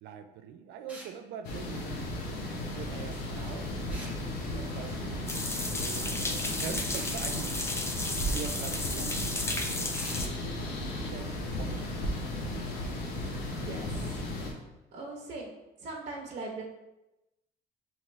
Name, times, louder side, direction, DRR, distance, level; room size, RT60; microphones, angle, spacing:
voice 1, 0.0-2.4 2.7-3.7 4.5-12.0, right 8 dB, 85° right, 9 dB, 0.4 m, -44 dB
sound 1, 0.9-1.2 3.9-4.2 6.9-7.2 9.9-10.2, right 1 dB, 10° right, 0.9 m, -45 dB
sound 2, 1.4-14.5, left 1 dB, 90° left, 0.8 m, -35 dB
sound 3, 5.3-10.3, left 2 dB, 15° left, 0.5 m, -34 dB
voice 2, 13.4-14.3 14.9-15.5 15.8-16.6, right 3 dB, 45° right, -1 dB, 0.7 m, -40 dB
5.6 x 2.6 x 3.1 m, 0.99 s
cardioid pair, 110°, 17 cm